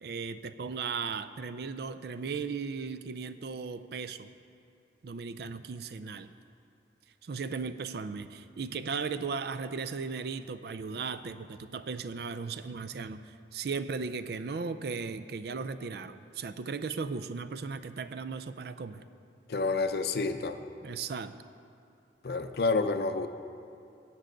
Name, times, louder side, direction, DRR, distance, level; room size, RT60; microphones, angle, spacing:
voice 1, 0.0-4.3 5.0-6.3 7.2-13.2 13.5-19.0 20.8-21.3, right 5 dB, 60° right, 12 dB, 0.4 m, -36 dB
voice 2, 19.5-20.6 22.2-23.3, left 3 dB, 60° left, 9 dB, 0.5 m, -29 dB
16.0 x 8.3 x 3.9 m, 2.7 s
head